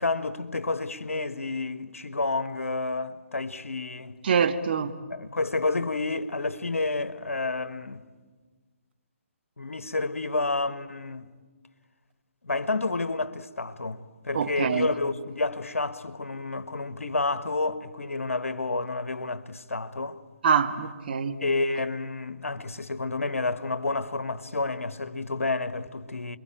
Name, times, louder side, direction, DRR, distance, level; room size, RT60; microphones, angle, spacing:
voice 1, 0.0-4.2 5.1-8.0 9.6-11.3 12.4-20.2 21.4-26.4, left 3 dB, 80° left, 1.4 m, -30 dB
voice 2, 4.2-4.9 14.3-14.9 20.4-21.4, right 6 dB, 45° right, 1.8 m, -24 dB
29.5 x 22.5 x 9.0 m
figure-of-eight pair, 140°, 7 cm